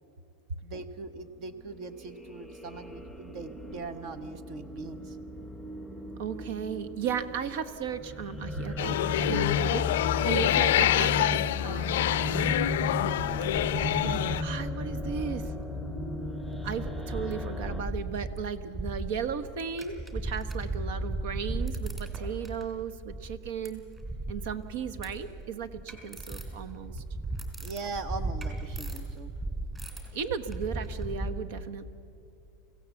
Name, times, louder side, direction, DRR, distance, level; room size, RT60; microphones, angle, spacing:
voice 1, 0.6-5.2 27.6-29.3, right 4 dB, 45° right, 12 dB, 1.0 m, -40 dB
sound 1, 1.6-17.8, left 2 dB, ahead, 0.8 m, -35 dB
voice 2, 6.2-9.0 9.2-12.6 13.6-15.5 16.6-23.8 24.3-27.0 30.1-31.8, right 7 dB, 70° right, 12 dB, 1.1 m, -36 dB
sound 2, 8.8-14.4, left 14 dB, 80° left, 0.4 m, -26 dB
sound 3, 13.8-14.4 14.7-16.1 16.4-31.3, right 2 dB, 15° right, 3.0 m, -37 dB
25.0 x 16.0 x 7.1 m, 2.6 s
supercardioid pair, 150°, 0 cm